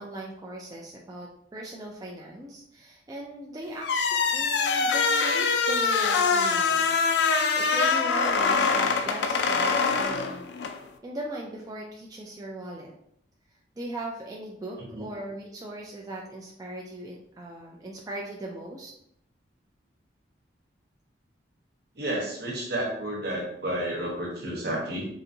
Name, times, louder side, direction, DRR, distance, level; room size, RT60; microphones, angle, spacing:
voice 1, 0.0-6.9 7.6-10.5 11.0-12.9 13.8-18.9, right 1 dB, 20° right, -2 dB, 0.3 m, -39 dB
sound 1, 3.8-10.8, left 5 dB, 65° left, 0.3 m, -24 dB
voice 2, 21.9-25.1, right 1 dB, 60° right, -1 dB, 1.0 m, -31 dB
3.9 x 2.6 x 2.7 m, 0.73 s
head